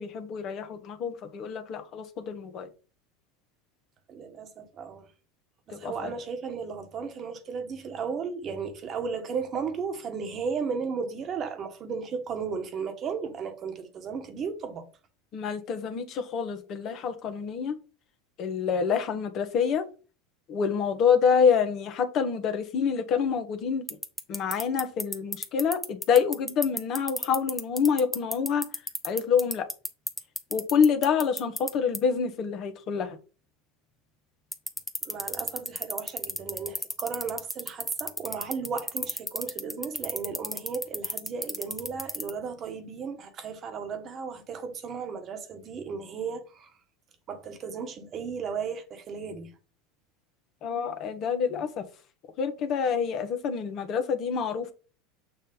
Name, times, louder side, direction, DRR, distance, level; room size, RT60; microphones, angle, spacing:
voice 1, 0.0-2.7 5.7-6.1 15.3-17.7 18.4-19.9 20.5-23.8 24.3-28.6 29.0-29.7 30.5-33.2 50.6-51.8 52.4-54.7, left 6 dB, 50° left, 1.2 m, -27 dB
voice 2, 4.1-5.1 5.7-14.9 35.0-46.7 47.3-49.5, right 5 dB, 40° right, 1.5 m, -35 dB
sound 1, 23.9-31.7 31.9-32.0 34.5-42.3, equal, ahead, 1.0 m, -30 dB
7.2 x 2.7 x 5.3 m
hypercardioid pair, 90°, 0 cm